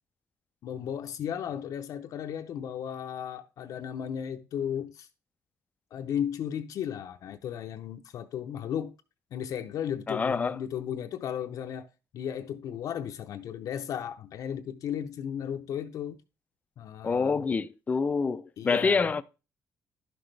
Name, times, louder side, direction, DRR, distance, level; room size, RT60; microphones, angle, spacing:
voice 1, 0.6-5.1 5.9-8.9 9.3-11.9 12.1-16.2 16.8-17.4 18.6-19.1, left 9 dB, 65° left, 0.7 m, -35 dB
voice 2, 10.1-10.6 17.0-19.2, left 4 dB, 25° left, 0.5 m, -26 dB
11.5 x 6.1 x 3.3 m
cardioid pair, 150°, 6 cm